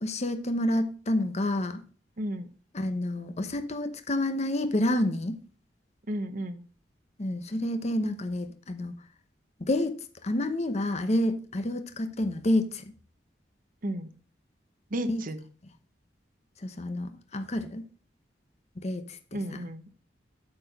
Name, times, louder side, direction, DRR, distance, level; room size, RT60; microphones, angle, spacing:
voice 1, 0.0-1.8 2.7-5.4 7.2-8.9 9.6-9.9 10.2-12.9 15.1-15.2 16.6-17.8 18.8-19.6, left 1 dB, 40° left, 0.9 m, -29 dB
voice 2, 2.2-2.5 6.1-6.6 13.8-14.1 14.9-15.4 19.3-19.9, right 1 dB, 50° right, 0.9 m, -33 dB
8.6 x 4.5 x 6.6 m
head